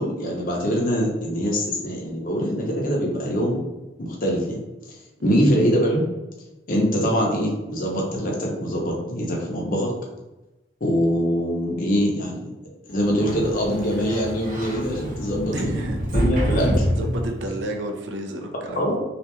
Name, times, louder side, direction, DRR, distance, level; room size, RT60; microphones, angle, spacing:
voice 1, 0.0-3.6 4.0-4.6 5.2-6.0 6.7-9.9 10.8-12.4 12.9-15.8 16.1-16.8 18.8-19.0, equal, 50° left, -2 dB, 0.6 m, -23 dB
voice 2, 5.2-5.5 15.5-16.0 16.3-16.5 17.0-19.0, right 1 dB, 85° right, 3 dB, 0.4 m, -31 dB
Sliding door, 13.0-17.7, equal, 50° right, 0.9 m, -27 dB
2.4 x 2.2 x 2.9 m, 1.0 s
head